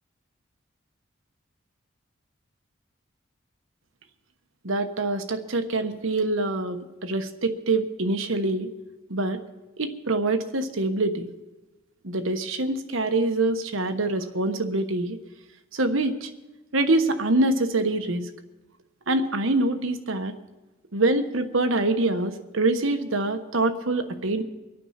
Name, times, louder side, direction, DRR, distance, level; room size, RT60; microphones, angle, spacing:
voice 1, 4.6-8.7 9.1-9.4 9.8-11.3 12.0-15.2 15.7-16.3 16.7-18.3 19.1-20.3 20.9-24.4, right 2 dB, 80° right, 8 dB, 1.2 m, -25 dB
24.0 x 9.1 x 5.8 m, 1.1 s
head